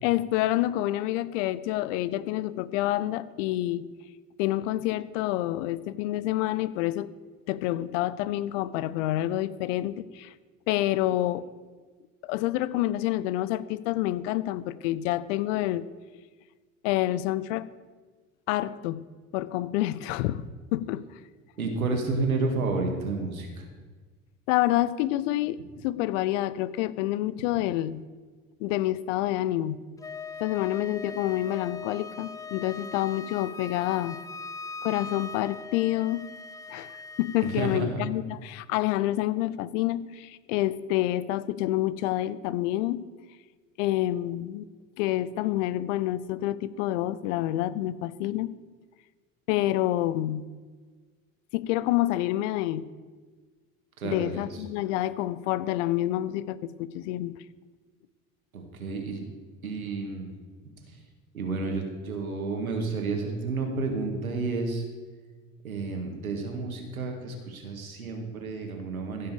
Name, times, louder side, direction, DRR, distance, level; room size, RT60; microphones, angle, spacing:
voice 1, 0.0-3.9 4.4-7.1 7.5-10.3 10.7-11.4 12.2-15.9 16.8-17.6 18.5-19.0 19.3-20.5 20.7-21.0 24.5-28.0 28.6-29.8 30.4-34.2 34.8-36.3 36.7-43.0 43.8-44.7 45.0-48.5 49.5-50.5 51.5-52.9 54.0-57.3, left 15 dB, 60° left, 17 dB, 0.7 m, -28 dB
voice 2, 21.6-23.7 37.5-37.9 54.0-54.5 58.5-59.2 59.6-60.3 61.3-64.9 65.6-69.3, right 3 dB, 85° right, 3 dB, 1.9 m, -30 dB
Wind instrument woodwind instrument, 30.0-37.9, left 4 dB, 10° left, 0.4 m, -40 dB
15.5 x 5.6 x 6.9 m, 1.4 s
figure-of-eight pair, 65°, 42 cm